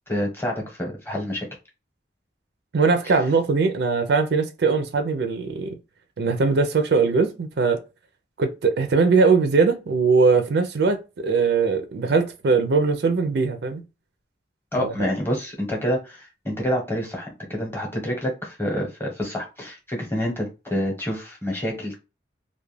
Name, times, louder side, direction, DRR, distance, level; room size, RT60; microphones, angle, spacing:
voice 1, 0.1-1.5 14.7-22.0, equal, 10° left, 0.8 m, -27 dB
voice 2, 2.7-5.8 6.2-7.8 8.4-13.8 14.8-15.1, right 4 dB, 60° right, 0.4 m, -21 dB
2.3 x 2.1 x 3.1 m
head